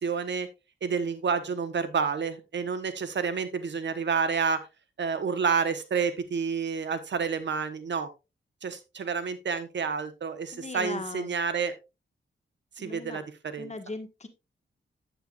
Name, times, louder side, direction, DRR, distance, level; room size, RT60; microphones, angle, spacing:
voice 1, 0.0-0.5 0.8-4.6 5.0-8.1 8.6-11.7 12.8-13.7, right 5 dB, 65° right, 11 dB, 1.2 m, -29 dB
voice 2, 10.5-11.3 12.8-13.2 13.6-14.3, left 3 dB, 35° left, 7 dB, 1.6 m, -38 dB
9.0 x 8.6 x 2.5 m, 0.26 s
cardioid pair, 75°, 20 cm